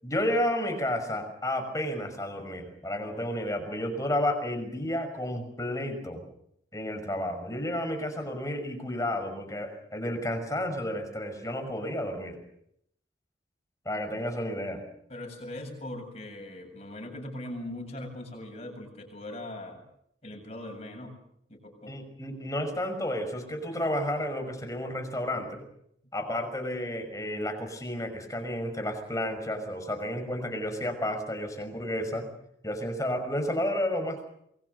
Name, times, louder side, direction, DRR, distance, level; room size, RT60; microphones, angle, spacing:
voice 1, 0.0-6.2 6.7-12.4 13.8-14.8 21.9-25.6 26.1-32.3 32.6-34.3, left 1 dB, 20° left, 6 dB, 5.9 m, -31 dB
voice 2, 15.1-19.8 20.2-21.1 21.5-21.9, left 1 dB, 35° left, 3 dB, 7.7 m, -40 dB
28.0 x 22.0 x 6.8 m, 0.74 s
head